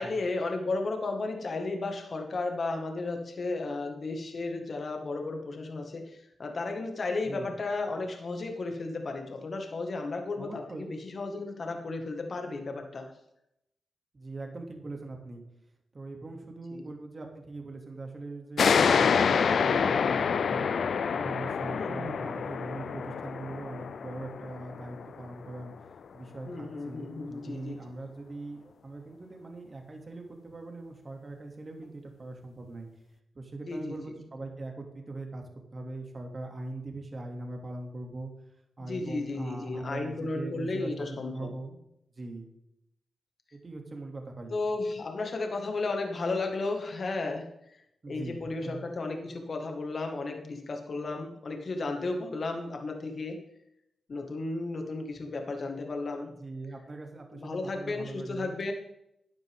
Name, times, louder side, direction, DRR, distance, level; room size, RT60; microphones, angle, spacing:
voice 1, 0.0-13.1 16.7-16.8 21.7-22.4 26.5-27.8 33.7-34.0 38.8-41.5 44.5-47.8 48.1-53.4 54.1-56.3 57.3-58.7, left 3 dB, 55° left, 4 dB, 1.9 m, -34 dB
voice 2, 10.4-10.9 14.1-15.4 15.9-20.7 21.1-25.7 26.1-32.9 33.3-35.4 35.7-38.3 38.8-41.8 42.1-42.5 43.5-44.5 48.0-48.8 56.3-58.5, right 2 dB, 40° right, 2 dB, 2.5 m, -41 dB
sound 1, 18.6-25.7, left 6 dB, 70° left, 0.5 m, -27 dB
13.0 x 9.5 x 3.7 m, 0.79 s
cardioid pair, 70°, 0 cm